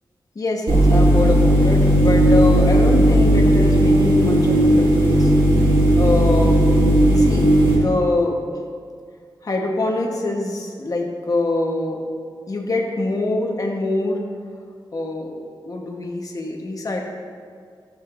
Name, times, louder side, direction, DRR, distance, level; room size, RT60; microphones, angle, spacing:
voice 1, 0.3-5.3 6.0-6.8 7.1-8.4 9.4-12.0 12.5-14.2 14.9-17.0, left 2 dB, 45° left, 0 dB, 1.1 m, -24 dB
sound 1, 0.7-7.8, right 1 dB, 80° right, 1.8 m, -15 dB
13.0 x 6.6 x 2.5 m, 2.1 s
wide cardioid pair, 135°, 8 cm